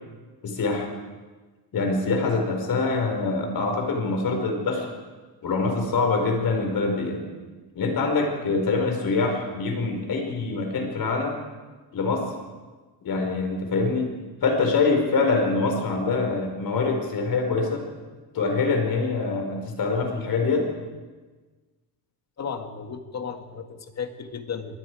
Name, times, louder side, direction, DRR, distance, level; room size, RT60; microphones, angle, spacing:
voice 1, 0.4-0.9 1.7-4.9 5.4-7.2 7.8-11.4 11.9-12.3 13.0-14.1 14.4-17.8 18.3-20.7, left 3 dB, 60° left, 3 dB, 5.2 m, -24 dB
voice 2, 22.4-24.8, left 6 dB, 45° left, 6 dB, 1.9 m, -34 dB
26.5 x 20.0 x 4.9 m, 1.3 s
cardioid pair, 125°, 39 cm